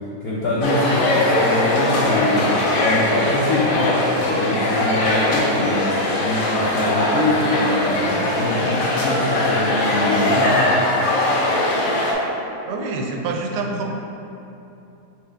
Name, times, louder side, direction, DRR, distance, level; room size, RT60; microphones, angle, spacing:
voice 1, 0.2-2.5 2.8-5.8 6.2-10.6, left 1 dB, 80° left, -6 dB, 0.5 m, -24 dB
sound 1, 0.6-12.1, left 1 dB, 65° left, 1.1 m, -20 dB
voice 2, 12.7-13.9, right 3 dB, 85° right, 2 dB, 1.2 m, -26 dB
4.7 x 3.1 x 3.5 m, 2.8 s
omnidirectional pair, 1.8 m